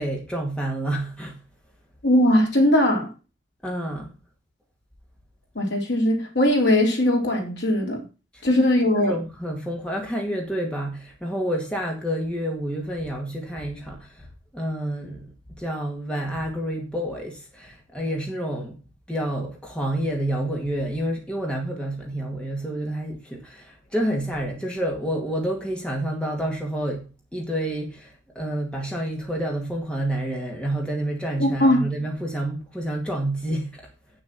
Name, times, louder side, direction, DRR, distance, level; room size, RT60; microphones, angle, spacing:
voice 1, 0.0-1.4 3.6-4.1 8.3-8.4 8.9-14.3 14.5-18.8 19.1-33.9, right 1 dB, 5° left, 1.9 m, -29 dB
voice 2, 2.0-3.1 5.6-8.0 8.4-9.1 31.4-31.8, left 1 dB, 65° left, 3.4 m, -20 dB
8.8 x 6.6 x 6.0 m
head